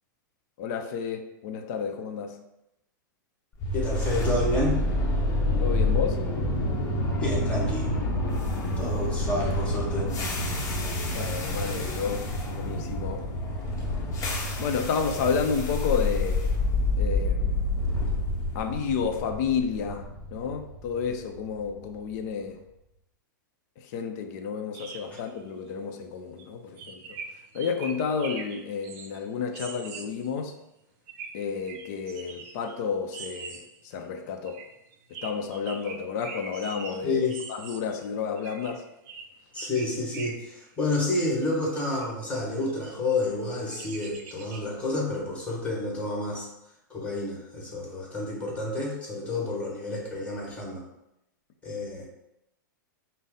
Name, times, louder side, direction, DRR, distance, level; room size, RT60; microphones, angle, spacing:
voice 1, 0.6-2.3 5.6-6.2 11.1-13.3 14.6-16.5 17.0-17.6 18.5-22.6 23.9-27.2 27.5-30.5 31.3-33.6 33.9-34.6 35.2-37.2 37.5-38.8, left 6 dB, 50° left, 4 dB, 0.6 m, -31 dB
sound 1, 3.6-21.7, left 1 dB, 30° left, 0.9 m, -28 dB
voice 2, 3.7-4.8 7.2-7.9 8.8-10.1 37.0-37.4 39.5-46.5 46.9-50.8 51.6-52.1, left 2 dB, 10° left, -3 dB, 1.5 m, -29 dB
sound 2, 24.7-25.4 25.7-25.8 26.4-26.5 26.8-30.4 31.1-32.8 33.1-33.9 34.5-38.1 38.4-40.6 41.4-41.5 41.7-42.1 42.7-43.0 43.7-44.7, right 5 dB, 45° right, 0.6 m, -43 dB
5.2 x 2.1 x 3.9 m, 0.87 s
hypercardioid pair, 120°, 11 cm